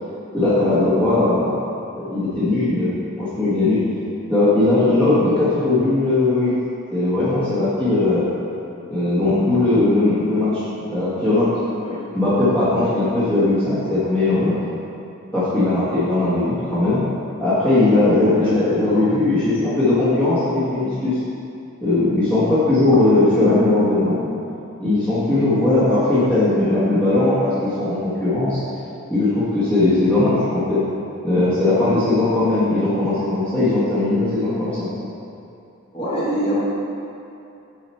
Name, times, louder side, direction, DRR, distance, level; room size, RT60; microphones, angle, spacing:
voice 1, 0.3-1.6 2.0-3.8 4.3-6.5 6.9-8.3 8.9-11.5 12.1-14.5 15.3-17.0 17.4-21.2 21.8-24.3 24.8-28.6 29.1-30.8 31.2-34.9, left 2 dB, 5° left, -13 dB, 1.3 m, -19 dB
voice 2, 18.3-19.0 25.3-25.5 35.9-36.6, equal, 25° left, -9 dB, 1.6 m, -26 dB
7.3 x 4.9 x 4.4 m, 2.7 s
head